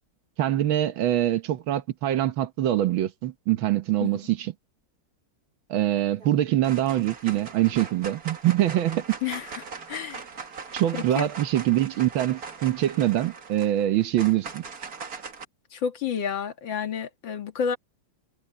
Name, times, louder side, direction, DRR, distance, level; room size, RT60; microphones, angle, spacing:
voice 1, 0.4-4.5 5.7-9.1 10.7-14.6, right 13 dB, 75° right, 1.7 m, -24 dB
sound 1, 5.9-6.3 6.6-15.4, right 5 dB, 45° right, 2.1 m, -40 dB
voice 2, 9.2-10.2 10.9-11.3 15.7-17.8, left 7 dB, 70° left, 2.3 m, -30 dB
omnidirectional pair, 2.2 m